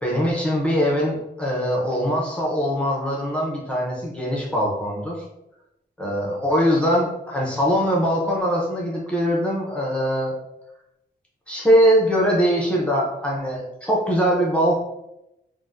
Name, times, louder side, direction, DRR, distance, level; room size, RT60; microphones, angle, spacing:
voice 1, 0.0-5.2 6.0-10.3 11.5-14.8, equal, 5° left, -4 dB, 0.6 m, -22 dB
2.6 x 2.1 x 3.4 m, 0.87 s
wide cardioid pair, 135°, 18 cm